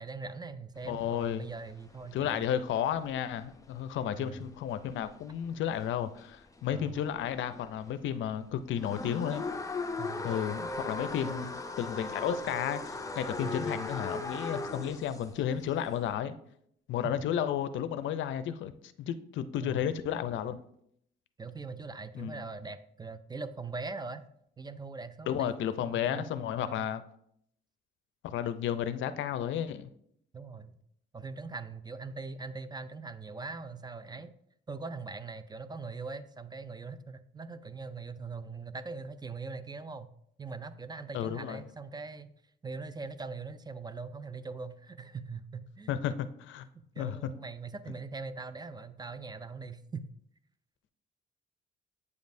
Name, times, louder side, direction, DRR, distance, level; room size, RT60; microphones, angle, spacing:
voice 1, 0.0-2.5 4.1-4.4 6.7-7.0 10.0-10.4 11.2-11.5 13.4-13.6 17.0-17.1 19.6-19.9 21.4-24.2 24.6-25.5 25.8-26.3 26.6-26.9 30.3-30.8 31.1-34.3 34.7-40.1 40.4-42.3 42.6-45.9 46.7-50.1, right 4 dB, 20° right, 12 dB, 0.4 m, -41 dB
voice 2, 0.8-1.5 2.1-9.4 10.2-11.5 11.8-16.4 16.9-18.7 19.0-20.6 22.1-22.4 25.3-27.0 28.2-29.9 41.1-41.6 45.9-46.7 47.0-47.3, left 9 dB, 75° left, 12 dB, 0.5 m, -32 dB
sound 1, 0.8-7.8 8.2-16.1, left 3 dB, 15° left, 0.6 m, -39 dB
8.1 x 5.2 x 2.6 m, 0.71 s
cardioid pair, 90°, 20 cm